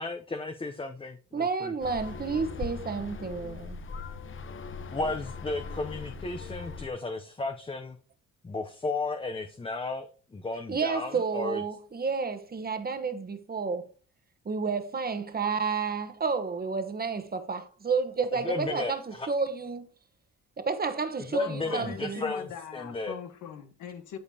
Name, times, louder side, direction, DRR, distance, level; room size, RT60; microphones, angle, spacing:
voice 1, 0.0-1.7 4.9-8.0 8.4-11.6 18.4-19.3 21.3-23.1, left 3 dB, 20° left, 0.7 m, -34 dB
voice 2, 1.3-3.8 10.7-13.8 14.4-19.9 20.6-22.2, right 5 dB, 30° right, 1.1 m, -30 dB
sound 1, 1.8-6.9, left 4 dB, 40° left, 0.9 m, -40 dB
voice 3, 21.4-24.2, left 8 dB, 85° left, 1.2 m, -41 dB
13.5 x 5.2 x 2.8 m
cardioid pair, 90°, 30 cm